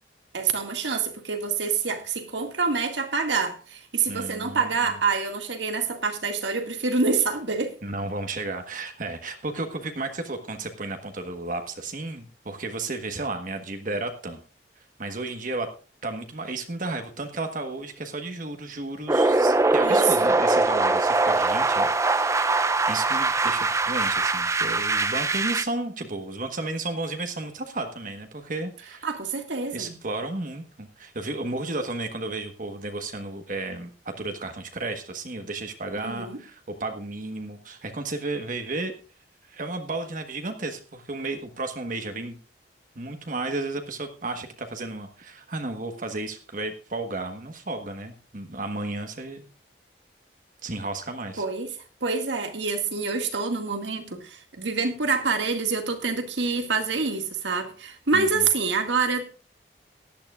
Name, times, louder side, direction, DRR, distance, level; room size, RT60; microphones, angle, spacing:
voice 1, 0.3-7.7 19.8-20.3 29.0-30.0 36.0-36.4 51.4-51.7 52.0-59.2, right 4 dB, 90° right, 6 dB, 2.1 m, -26 dB
voice 2, 4.1-4.7 7.8-14.4 15.0-15.7 16.0-22.6 22.9-29.1 29.7-38.9 39.5-42.4 42.9-49.4 50.6-51.4 58.1-58.5, right 2 dB, 50° right, 6 dB, 1.3 m, -33 dB
sound 1, 19.1-25.6, right 3 dB, 15° right, 0.5 m, -22 dB
17.5 x 11.5 x 2.4 m, 0.37 s
head